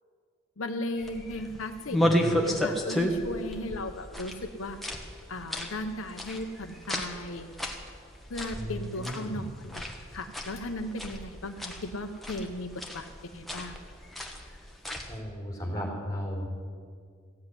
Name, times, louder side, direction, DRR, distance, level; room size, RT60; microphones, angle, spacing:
voice 1, 0.6-4.8 5.3-7.5 8.3-9.8 10.1-13.8, left 1 dB, 75° left, 6 dB, 0.8 m, -36 dB
sound 1, 1.0-15.2, equal, ahead, 1.3 m, -33 dB
voice 2, 2.0-2.3 8.5-9.4 15.1-16.5, equal, 15° left, -1 dB, 4.0 m, -35 dB
15.5 x 8.0 x 9.8 m, 2.1 s
head